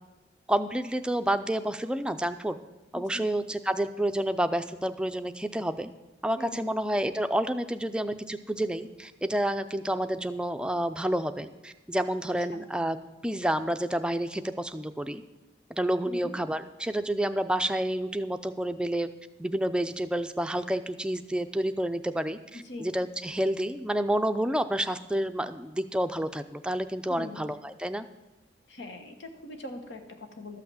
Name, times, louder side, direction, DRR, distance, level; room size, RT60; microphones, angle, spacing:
voice 1, 0.5-2.6 2.9-5.9 6.2-13.0 13.2-15.2 15.7-19.1 19.4-28.1, right 1 dB, 5° right, 9 dB, 0.4 m, -29 dB
voice 2, 2.9-3.4 6.3-6.8 12.5-12.6 16.0-16.3 22.6-22.9 27.1-27.5 28.7-30.6, left 2 dB, 85° left, 6 dB, 1.4 m, -42 dB
12.5 x 5.8 x 7.8 m, 1.1 s
head